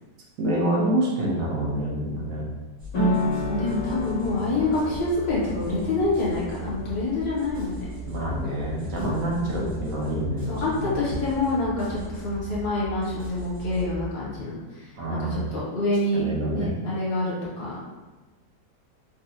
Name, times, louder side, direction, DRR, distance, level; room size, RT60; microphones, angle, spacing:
voice 1, 0.4-2.4 8.1-11.0 15.0-15.4 16.1-16.7, right 1 dB, 75° right, -4 dB, 1.4 m, -27 dB
sound 1, 2.8-14.1, left 1 dB, 35° right, 1.1 m, -38 dB
sound 2, 2.9-10.2, equal, 70° left, 1.6 m, -32 dB
voice 2, 3.5-7.9 9.3-9.5 10.5-16.2 16.5-17.8, left 2 dB, 45° left, -7 dB, 1.0 m, -27 dB
4.1 x 2.3 x 2.7 m, 1.2 s
omnidirectional pair, 2.0 m